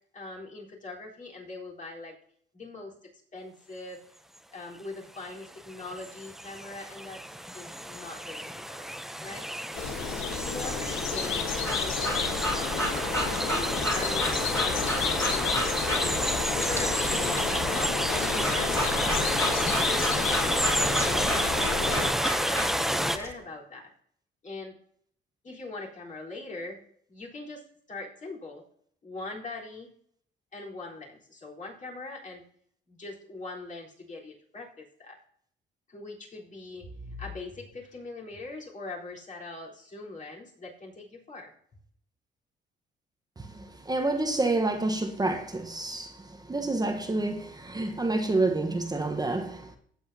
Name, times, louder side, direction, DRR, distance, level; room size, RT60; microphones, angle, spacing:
voice 1, 0.1-2.1 2.5-2.9 3.3-4.0 4.5-7.2 7.5-8.9 9.2-9.4 10.4-11.5 11.8-12.7 13.3-14.9 15.9-18.0 18.3-19.4 19.8-20.7 21.1-23.9 24.4-24.7 25.4-26.8 27.1-27.6 27.9-28.6 29.0-29.9 30.5-32.4 32.9-35.2 35.9-41.5, left 3 dB, 40° left, 3.8 m, -41 dB
sound 1, 5.2-23.2, equal, ahead, 0.6 m, -30 dB
sound 2, 9.7-22.1, left 6 dB, 85° left, 1.3 m, -31 dB
Breathing / Dog, 11.2-23.3, equal, 15° left, 2.7 m, -34 dB
voice 2, 43.6-46.1 46.5-49.8, right 2 dB, 20° right, 1.1 m, -28 dB
16.5 x 8.0 x 2.8 m
cardioid pair, 90°, 20 cm